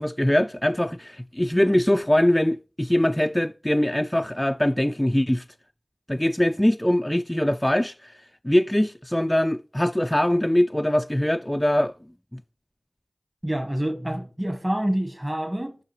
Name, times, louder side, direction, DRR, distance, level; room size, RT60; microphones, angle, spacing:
voice 1, 0.0-5.4 6.1-8.2 8.4-11.9 12.3-12.4, left 1 dB, 15° left, 0.3 m, -22 dB
voice 2, 13.4-15.8, right 1 dB, 20° right, 1.4 m, -27 dB
7.3 x 5.7 x 2.9 m
wide cardioid pair, 45°, 0 cm